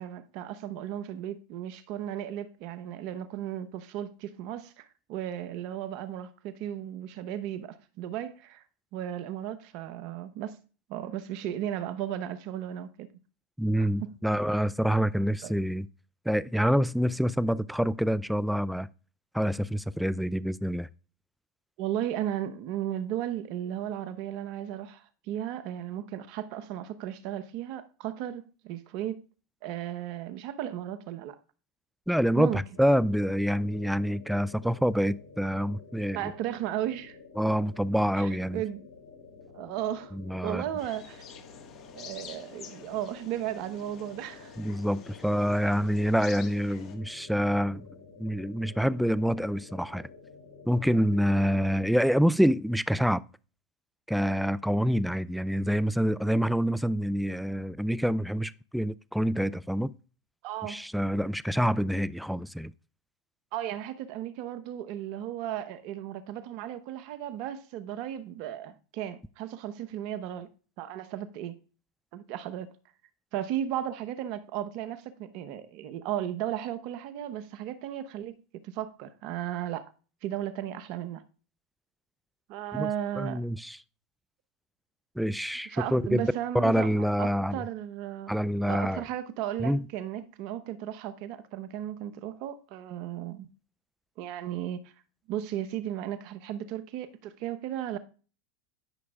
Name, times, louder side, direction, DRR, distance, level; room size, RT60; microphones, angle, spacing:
voice 1, 0.0-8.6 8.9-10.6 10.9-13.1 13.8-14.1 21.8-29.2 29.6-31.4 32.3-32.6 36.1-37.2 38.2-38.9 39.5-40.2 40.4-41.2 41.9-44.5 45.6-45.7 60.4-60.8 63.5-70.5 70.8-71.6 72.1-72.7 73.3-78.4 78.6-79.9 80.2-81.2 82.5-83.4 85.7-93.5 94.2-94.8 95.3-98.0, right 11 dB, 55° right, 0.9 m, -35 dB
voice 2, 13.6-15.9 16.3-18.9 19.3-20.9 32.1-36.2 37.4-38.6 40.1-40.6 44.6-47.9 48.2-50.1 50.7-53.2 54.1-59.9 60.6-62.7 82.7-82.9 83.2-83.8 85.2-87.6 88.3-89.0 89.6-89.8, equal, ahead, 0.3 m, -26 dB
sound 1, 32.7-51.6, left 4 dB, 80° left, 2.9 m, -51 dB
sound 2, 40.8-47.0, left 8 dB, 45° left, 1.5 m, -49 dB
13.0 x 6.1 x 2.4 m
hypercardioid pair, 105°, 0 cm